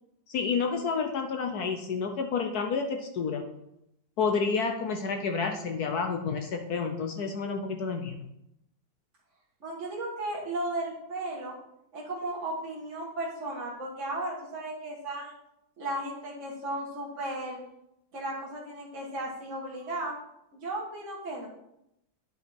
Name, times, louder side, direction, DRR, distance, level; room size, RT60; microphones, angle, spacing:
voice 1, 0.3-3.4 4.2-8.3, left 5 dB, 60° left, 5 dB, 1.1 m, -30 dB
voice 2, 9.6-11.6 11.9-15.3 15.8-17.6 18.1-20.2 20.5-21.5, right 1 dB, 40° right, -4 dB, 1.8 m, -35 dB
9.5 x 5.4 x 4.3 m, 0.82 s
omnidirectional pair, 2.2 m